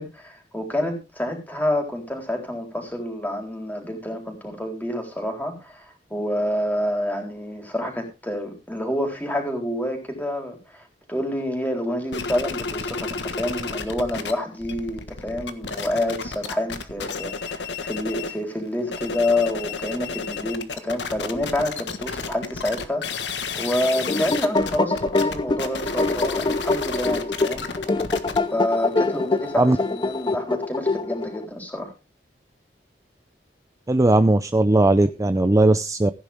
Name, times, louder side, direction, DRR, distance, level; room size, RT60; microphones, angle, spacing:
voice 1, 0.0-5.8 6.1-27.7 28.5-31.9 35.0-35.3, left 1 dB, 10° left, 3 dB, 4.0 m, -28 dB
sound 1, 12.1-14.3 14.6-18.4 18.8-30.3, left 4 dB, 90° left, 1.5 m, -32 dB
sound 2, 23.8-31.5, left 3 dB, 25° left, 0.6 m, -25 dB
voice 2, 33.9-36.1, right 2 dB, 20° right, 11 dB, 0.5 m, -18 dB
16.0 x 9.9 x 3.6 m, 0.29 s
head